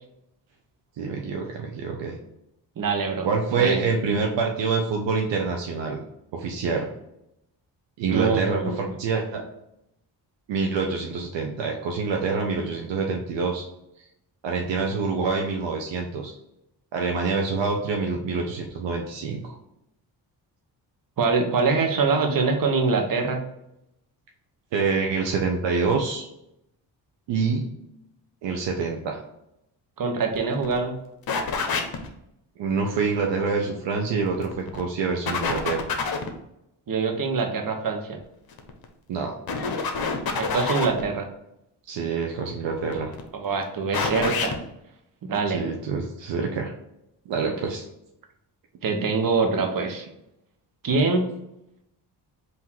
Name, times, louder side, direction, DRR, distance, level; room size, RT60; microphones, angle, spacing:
voice 1, 1.0-2.2 3.2-6.0 6.3-6.9 8.0-9.4 10.5-13.7 14.4-16.3 16.9-19.5 24.7-26.3 27.3-27.7 28.4-29.2 32.6-35.8 39.1-39.3 41.9-43.1 45.5-46.7 47.3-47.8, right 4 dB, 70° right, 1 dB, 0.7 m, -26 dB
voice 2, 2.8-3.8 8.1-8.9 21.2-23.4 30.0-31.0 36.9-38.2 40.4-41.3 43.3-44.6 45.3-45.6 48.8-50.1 50.8-51.3, right 4 dB, 45° right, 4 dB, 1.0 m, -24 dB
sound 1, 30.3-30.4 30.6-30.8 31.3-32.1 34.2-34.8 35.3-36.3 38.5-38.8 39.5-41.0 42.7-43.2 43.9-44.6, left 4 dB, 50° left, 0.9 m, -27 dB
3.8 x 2.8 x 4.4 m, 0.82 s
supercardioid pair, 55°, 46 cm